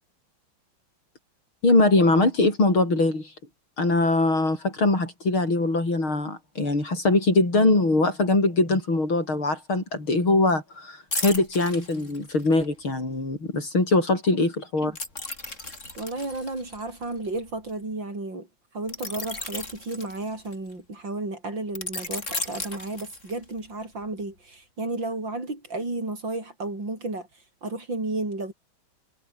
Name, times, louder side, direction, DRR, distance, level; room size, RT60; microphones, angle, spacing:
voice 1, 1.6-3.3 3.8-15.0, left 2 dB, 80° left, 8.6 m, -22 dB
sound 1, 11.1-12.7 15.0-17.7 18.9-20.7 21.8-23.6 24.0-24.2, left 2 dB, 35° left, 6.4 m, -35 dB
voice 2, 16.0-18.5 18.7-27.3 27.6-28.5, right 2 dB, 60° right, 8.7 m, -32 dB
omnidirectional pair, 2.2 m